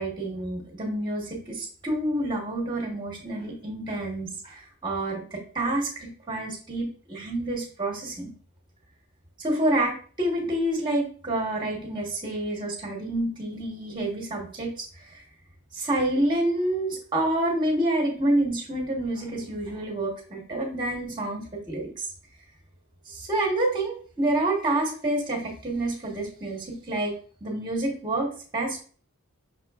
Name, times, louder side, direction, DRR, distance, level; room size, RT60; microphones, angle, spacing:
voice 1, 0.0-8.3 9.4-15.2 15.7-22.1 23.1-27.1 27.4-28.8, right 1 dB, 20° right, -1 dB, 1.1 m, -28 dB
5.8 x 3.7 x 2.3 m, 0.43 s
head